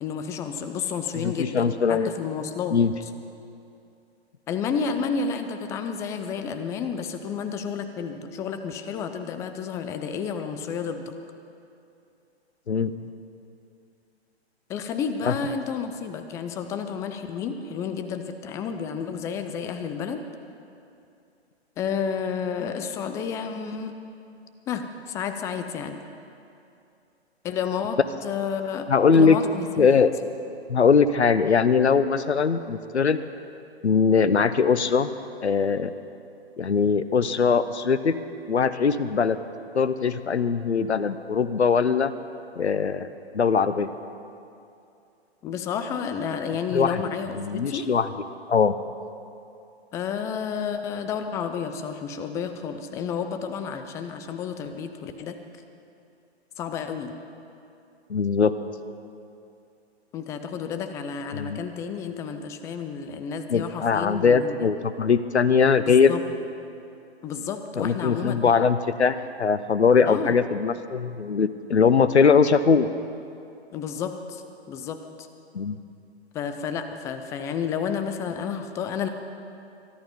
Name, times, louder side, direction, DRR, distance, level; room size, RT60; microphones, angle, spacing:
voice 1, 0.0-2.8 4.5-11.1 14.7-20.2 21.8-24.0 24.7-26.0 27.4-28.9 29.1-29.9 45.4-47.9 49.9-55.4 56.6-57.1 60.1-64.7 65.8-66.2 67.2-68.5 70.1-70.4 73.7-75.0 76.3-79.1, left 6 dB, 10° left, 8 dB, 0.4 m, -31 dB
voice 2, 1.2-2.1 2.7-2.9 12.7-12.9 15.2-15.3 28.9-29.4 29.8-30.1 30.7-33.2 33.8-35.1 35.4-35.9 36.6-38.2 38.5-39.4 39.7-42.1 42.6-43.1 43.3-43.9 46.7-47.0 47.4-48.1 48.5-48.7 58.1-58.5 61.3-61.6 63.5-66.1 67.8-72.9 75.5-75.8, left 5 dB, 85° left, 13 dB, 0.8 m, -21 dB
23.0 x 11.5 x 5.4 m, 2.6 s
figure-of-eight pair, 125°, 33 cm